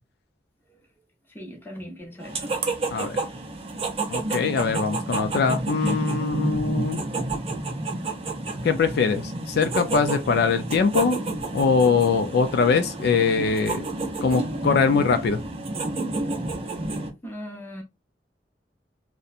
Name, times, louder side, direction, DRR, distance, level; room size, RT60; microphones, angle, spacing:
voice 1, 1.3-2.5 17.2-17.8, equal, 10° left, 0.7 m, -38 dB
sound 1, 2.2-17.1, right 2 dB, 35° right, 0.5 m, -30 dB
voice 2, 4.1-7.0 8.6-11.2 11.5-13.8 14.2-15.4, left 5 dB, 60° left, 0.3 m, -22 dB
2.7 x 2.1 x 2.4 m
head